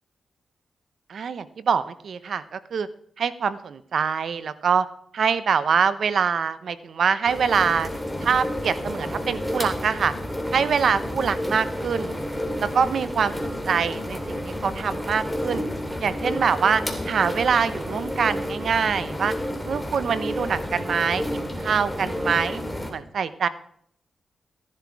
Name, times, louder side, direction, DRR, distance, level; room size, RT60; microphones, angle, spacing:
voice 1, 1.1-2.9 3.2-4.9 5.1-7.9 8.2-10.1 10.5-12.2 12.6-15.6 16.0-19.3 19.6-22.6 22.9-23.5, right 6 dB, 75° right, 14 dB, 0.8 m, -24 dB
sound 1, 7.3-22.9, equal, ahead, 2.5 m, -30 dB
14.5 x 11.0 x 4.7 m, 0.68 s
cardioid pair, 80°, 0 cm